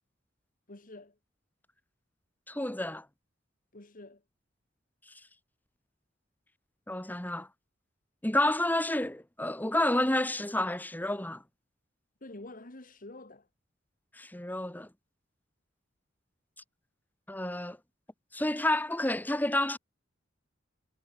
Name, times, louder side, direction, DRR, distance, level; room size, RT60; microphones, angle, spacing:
voice 1, 0.7-1.2 3.7-4.2 12.2-13.5, left 2 dB, 45° left, 2.0 m, -47 dB
voice 2, 2.5-3.0 6.9-7.5 8.2-11.4 14.1-14.9 17.3-17.8 18.3-19.8, left 1 dB, 10° left, 1.4 m, -30 dB
head